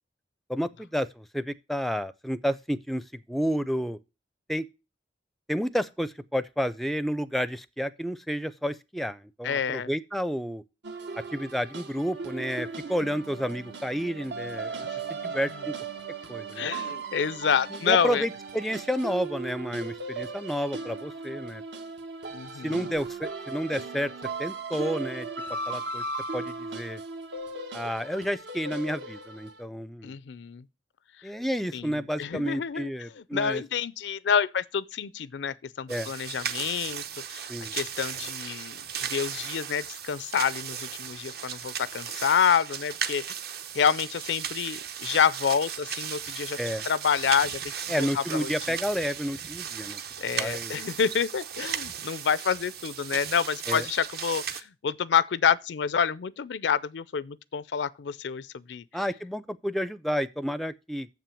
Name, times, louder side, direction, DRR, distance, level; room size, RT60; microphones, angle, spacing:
voice 1, 0.5-4.0 4.5-4.7 5.5-10.6 11.3-14.8 15.3-15.7 16.3-16.7 17.7-21.6 22.6-24.1 24.4-26.0 26.3-27.0 27.7-30.2 31.2-33.6 35.9-36.1 37.5-37.7 46.6-46.9 47.9-50.0 50.4-50.8 53.7-53.9 58.9-61.1, equal, ahead, 0.4 m, -30 dB
voice 2, 9.4-9.9 15.2-15.3 16.6-18.2 22.3-22.8 30.0-30.6 31.7-32.9 33.3-37.0 37.3-37.5 37.7-43.2 43.7-46.6 46.9-47.6 48.0-48.5 50.2-58.8, left 7 dB, 80° left, 0.4 m, -28 dB
sound 1, 10.8-29.6, right 3 dB, 80° right, 1.3 m, -37 dB
sound 2, 35.9-54.6, right 8 dB, 60° right, 0.8 m, -36 dB
7.3 x 6.0 x 6.9 m
head